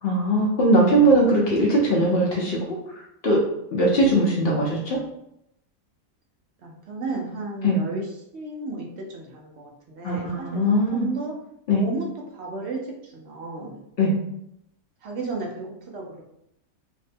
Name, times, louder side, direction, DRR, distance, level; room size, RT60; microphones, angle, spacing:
voice 1, 0.0-2.6 3.2-3.4 3.7-5.0 7.6-7.8 10.0-11.1 11.7-11.8 14.0-14.2, right 1 dB, 60° left, -3 dB, 0.6 m, -20 dB
voice 2, 6.6-11.3 11.7-12.1 12.3-13.8 15.0-16.2, right 3 dB, 65° right, -1 dB, 0.7 m, -34 dB
2.6 x 2.1 x 2.5 m, 0.78 s
omnidirectional pair, 1.5 m